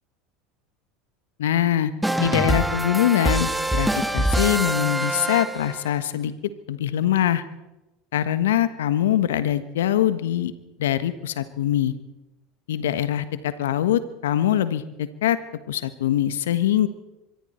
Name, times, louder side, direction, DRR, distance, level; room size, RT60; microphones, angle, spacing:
voice 1, 1.4-1.9 2.2-6.3 6.7-7.4 8.1-10.5 10.8-11.9 12.7-15.4 15.7-16.9, left 11 dB, 80° left, 13 dB, 1.3 m, -23 dB
sound 1, 2.0-5.9, right 1 dB, 5° right, 1.7 m, -24 dB
25.5 x 23.5 x 4.5 m, 0.99 s
hypercardioid pair, 80°, 0 cm